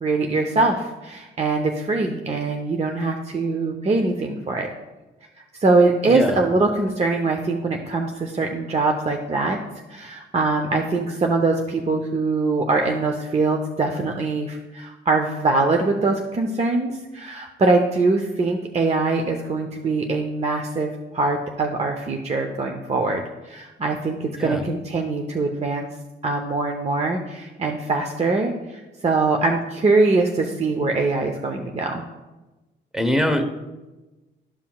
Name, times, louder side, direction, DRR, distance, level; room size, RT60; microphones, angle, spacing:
voice 1, 0.0-4.7 5.6-9.6 9.9-25.8 26.2-32.0, right 3 dB, 30° right, 3 dB, 0.7 m, -23 dB
voice 2, 6.1-6.4 24.4-24.6 32.9-33.4, left 1 dB, 5° right, 6 dB, 0.9 m, -22 dB
12.5 x 5.6 x 2.3 m, 1.1 s
cardioid pair, 90°, 20 cm